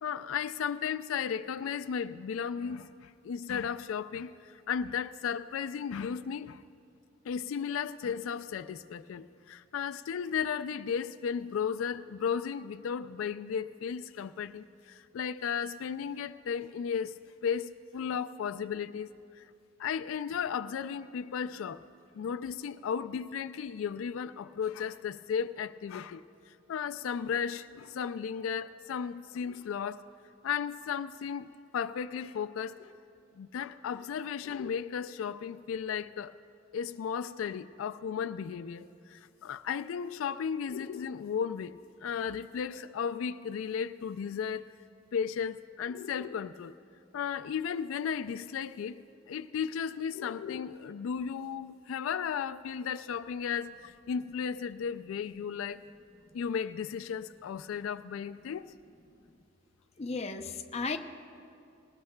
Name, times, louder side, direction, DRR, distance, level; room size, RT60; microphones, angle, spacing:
voice 1, 0.0-6.6 7.2-17.1 17.4-19.5 19.8-21.8 22.2-26.3 26.7-30.0 30.4-32.9 33.4-36.4 36.7-44.7 45.1-46.8 47.1-55.8 56.3-58.7, left 7 dB, 90° left, 0.3 m, -35 dB
voice 2, 60.0-61.0, left 4 dB, 30° left, 0.5 m, -34 dB
20.5 x 18.5 x 2.2 m
head